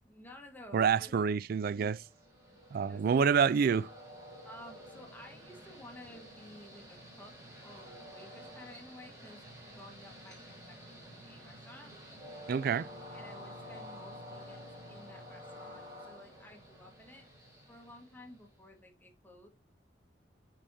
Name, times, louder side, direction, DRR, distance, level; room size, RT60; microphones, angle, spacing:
voice 1, 0.0-1.2 1.8-2.0 2.5-2.6 2.9-3.1 4.4-7.4 7.6-11.9 13.1-17.3 17.7-19.5, left 1 dB, 10° left, 1.5 m, -53 dB
voice 2, 0.7-2.0 2.7-3.9 12.5-12.9, right 6 dB, 55° right, 0.3 m, -27 dB
Train, 1.8-18.6, equal, 20° right, 3.8 m, -50 dB
8.9 x 4.8 x 2.7 m
head